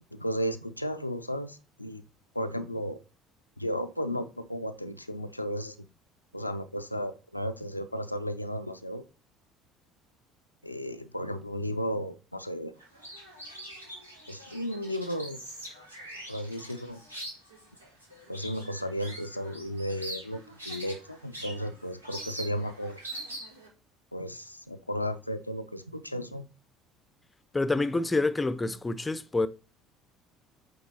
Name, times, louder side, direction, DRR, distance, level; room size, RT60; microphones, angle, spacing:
voice 1, 0.1-2.0 2.3-3.0 3.6-5.8 6.3-9.0 10.6-12.7 14.3-15.4 16.3-17.0 18.3-23.0 24.1-26.5, equal, 90° left, 0.4 m, -34 dB
sound 1, 12.8-23.7, right 1 dB, 85° right, 1.6 m, -43 dB
voice 2, 27.5-29.5, left 2 dB, 15° left, 0.6 m, -27 dB
8.3 x 3.5 x 4.1 m
figure-of-eight pair, 60°, 0 cm